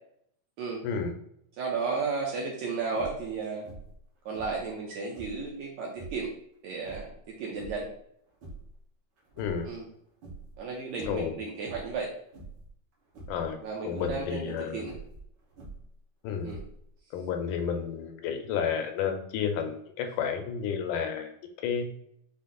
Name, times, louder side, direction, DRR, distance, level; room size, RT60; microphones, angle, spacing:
voice 1, 1.6-3.7 4.2-6.3 6.6-7.1 7.4-7.9 9.6-9.8 10.6-12.1 13.6-15.0 16.4-16.6, right 4 dB, 75° right, -2 dB, 1.7 m, -33 dB
sound 1, 2.9-3.3 3.6-4.0 4.3-5.5 5.9-6.3 6.8-7.9 8.3-8.8 9.2-9.9 10.2-10.6 10.9-11.3 11.6-12.0 12.3-12.7 13.1-13.5 13.9-14.2 14.8-16.0 16.4-17.0, right 3 dB, 60° right, 1.3 m, -45 dB
voice 2, 9.4-9.7 11.0-11.3 13.3-13.6 13.8-14.8 16.2-16.5 17.1-21.3 21.6-21.9, left 7 dB, 80° left, 5 dB, 2.0 m, -31 dB
5.7 x 2.1 x 3.7 m, 0.71 s
omnidirectional pair, 3.8 m